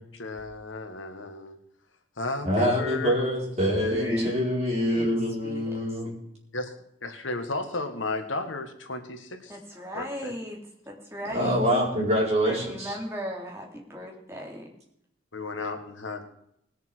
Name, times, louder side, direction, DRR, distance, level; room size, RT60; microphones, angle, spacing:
voice 1, 0.2-1.6 2.2-3.1 3.9-4.1 6.5-6.7 7.0-10.3 15.3-16.2, left 3 dB, 85° left, 6 dB, 1.8 m, -34 dB
voice 2, 2.4-6.1 11.3-12.9, equal, 35° right, -3 dB, 4.7 m, -25 dB
voice 3, 3.9-4.3 4.9-5.1 5.4-6.0 9.5-10.6 10.9-11.6 12.5-14.7, equal, 15° right, -1 dB, 3.2 m, -35 dB
20.0 x 6.9 x 6.3 m, 0.73 s
head